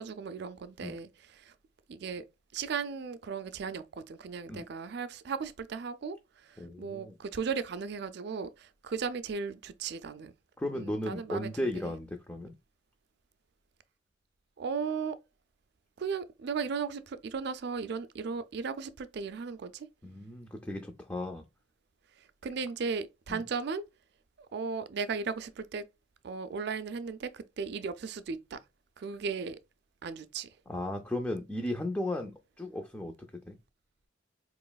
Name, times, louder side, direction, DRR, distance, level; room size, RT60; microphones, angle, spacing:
voice 1, 0.0-1.5 1.9-2.2 2.5-6.2 6.5-10.3 10.7-11.9 14.6-15.2 16.0-19.9 22.4-23.8 24.5-25.8 26.2-28.6 29.0-29.6 30.0-30.5, right 5 dB, 60° right, 0.4 m, -36 dB
voice 2, 6.6-7.2 10.6-12.5 20.0-21.4 23.3-23.4 30.7-33.1 33.5-33.6, left 1 dB, 10° left, 0.4 m, -35 dB
4.7 x 3.0 x 2.2 m
head